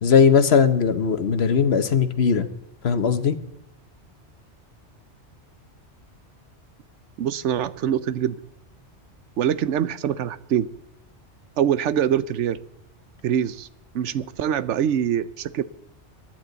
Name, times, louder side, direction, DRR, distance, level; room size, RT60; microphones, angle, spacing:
voice 1, 0.0-2.5 2.8-3.4, left 6 dB, 65° left, 11 dB, 1.2 m, -19 dB
voice 2, 7.2-8.4 9.4-10.7 11.6-12.6 13.2-13.7 13.9-15.6, right 9 dB, 80° right, 15 dB, 1.0 m, -24 dB
23.0 x 10.5 x 4.0 m, 0.78 s
omnidirectional pair, 1.2 m